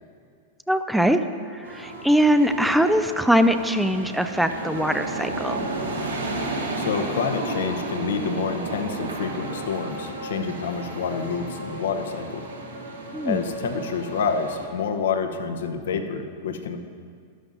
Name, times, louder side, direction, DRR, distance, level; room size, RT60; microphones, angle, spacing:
voice 1, 0.7-1.2 1.5-5.7 13.1-13.4, equal, ahead, 9 dB, 0.5 m, -21 dB
sound 1, 1.6-14.7, right 2 dB, 85° right, 1.7 m, -33 dB
voice 2, 6.8-12.5 13.2-16.8, left 6 dB, 70° left, 7 dB, 0.9 m, -28 dB
12.5 x 12.0 x 2.7 m, 2.2 s
hypercardioid pair, 100°, 0 cm